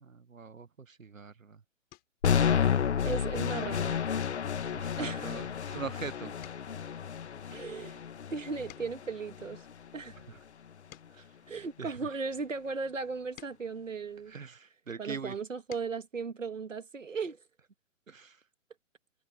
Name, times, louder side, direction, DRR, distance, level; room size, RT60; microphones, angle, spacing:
voice 1, 0.0-1.6 4.7-6.3 11.2-11.3 11.8-12.0 14.3-15.3 18.1-18.4, right 5 dB, 90° right, 0.9 m, -42 dB
sound 1, 1.9-2.3 2.8-3.1 3.5-3.7 4.2-6.0 6.3-9.2 9.8-12.3 12.9-14.8 15.3-16.1 17.5-17.6 17.9-18.0, left 23 dB, 25° left, 6.2 m, -59 dB
sound 2, 2.2-10.2, left 7 dB, 60° left, 1.4 m, -31 dB
voice 2, 3.0-4.0 5.0-5.3 7.5-8.0 8.3-9.6 9.9-10.2 11.5-14.4 15.0-17.4, right 4 dB, 70° right, 2.1 m, -36 dB
figure-of-eight pair, 125°, 39 cm